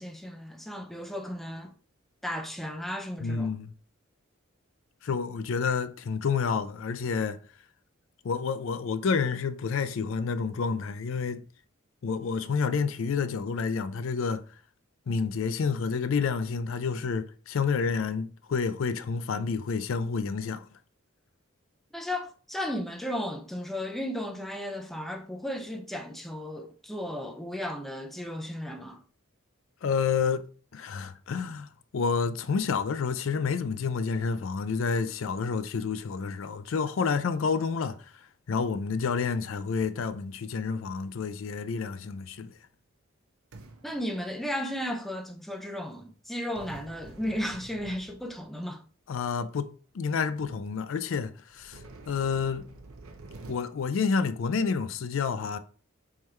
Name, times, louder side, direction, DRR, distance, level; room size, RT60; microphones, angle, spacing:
voice 1, 0.0-1.7 2.2-3.5 21.9-29.0 43.8-48.8, left 1 dB, ahead, 0.4 m, -34 dB
voice 2, 3.2-3.7 5.0-7.4 8.2-11.4 12.0-14.4 15.1-20.7 29.8-30.5 30.7-38.0 38.5-42.5 49.1-52.7 53.5-55.6, left 5 dB, 65° left, 0.4 m, -29 dB
sound 1, 42.0-42.6 43.5-44.8 46.6-48.7 49.5-49.6 50.1-50.2 50.4-50.7 51.5-53.6, right 2 dB, 85° right, 0.7 m, -48 dB
4.4 x 3.7 x 3.2 m
head